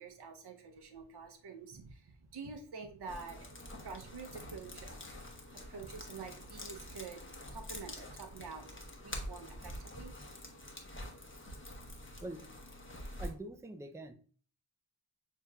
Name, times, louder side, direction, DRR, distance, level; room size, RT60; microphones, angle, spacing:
voice 1, 0.0-3.5 3.8-5.1 5.5-7.2 7.5-8.7 9.0-10.2, right 4 dB, 55° right, 4 dB, 0.7 m, -47 dB
sound 1, 3.1-13.3, left 1 dB, 25° left, 0.9 m, -47 dB
voice 2, 13.2-14.1, right 1 dB, 5° right, 7 dB, 0.4 m, -44 dB
6.6 x 2.8 x 2.2 m, 0.42 s
wide cardioid pair, 45°, 47 cm